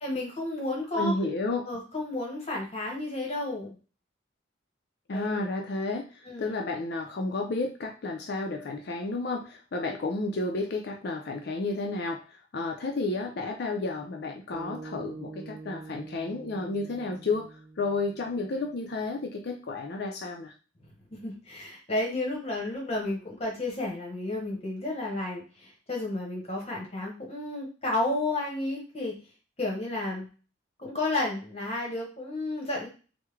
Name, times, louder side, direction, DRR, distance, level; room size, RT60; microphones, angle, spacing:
voice 1, 0.0-1.1 1.6-3.8 5.1-5.4 6.3-6.5 21.1-29.1 29.6-30.3 30.8-32.9, left 2 dB, 30° left, -2 dB, 0.9 m, -32 dB
voice 2, 0.9-1.6 5.1-20.5, left 3 dB, 55° left, 2 dB, 0.4 m, -32 dB
sound 1, 14.5-18.9, right 3 dB, 55° right, 1.0 m, -45 dB
3.5 x 2.1 x 3.2 m, 0.36 s
head